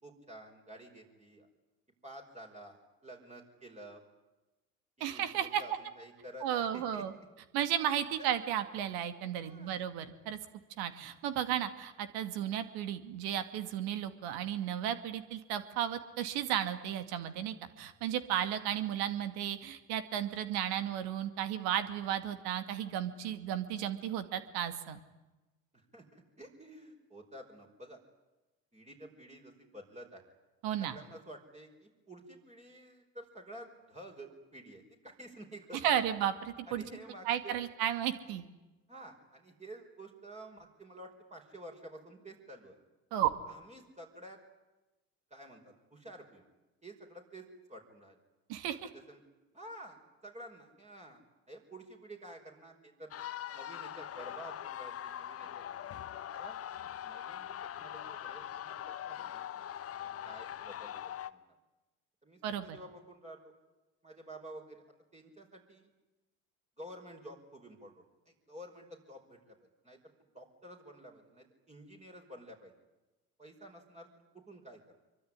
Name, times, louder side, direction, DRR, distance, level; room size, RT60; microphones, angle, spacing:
voice 1, 0.0-1.5 2.0-4.0 5.0-7.1 9.4-9.8 20.4-20.6 25.9-28.0 28.7-30.2 30.8-35.9 36.7-37.6 38.9-42.8 43.5-44.4 45.3-46.5 46.8-48.2 48.8-49.2 49.5-51.2 51.5-53.1 53.5-55.6 56.3-56.6 57.0-59.7 60.2-61.4 62.2-63.5 64.0-64.8 65.1-65.9 66.8-69.6 69.8-70.0 70.3-72.7 73.4-74.1 74.3-74.8, right 1 dB, 15° right, 1 dB, 5.4 m, -51 dB
voice 2, 5.0-5.6 6.4-7.1 7.5-10.4 10.8-25.0 30.6-31.0 35.8-36.8 37.3-38.5 43.1-43.3 48.5-48.9 62.4-62.8, right 10 dB, 60° right, 11 dB, 2.3 m, -34 dB
sound 1, 53.1-61.3, left 10 dB, 35° left, 1.2 m, -42 dB
25.5 x 24.0 x 10.0 m, 1.1 s
figure-of-eight pair, 65°, 42 cm